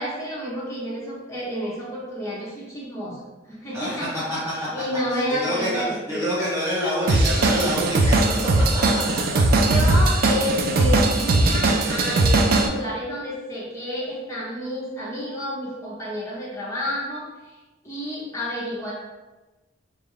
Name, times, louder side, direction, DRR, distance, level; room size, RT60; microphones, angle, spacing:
voice 1, 0.0-3.2 3.5-4.2 4.5-6.4 8.5-8.6 9.6-17.2 17.8-18.9, equal, 15° left, -7 dB, 0.9 m, -30 dB
voice 2, 3.7-4.7 5.1-9.2, equal, 15° right, -8 dB, 0.6 m, -27 dB
Drum kit / Drum, 7.1-12.7, right 2 dB, 50° right, 0.3 m, -19 dB
3.6 x 2.3 x 3.6 m, 1.2 s
head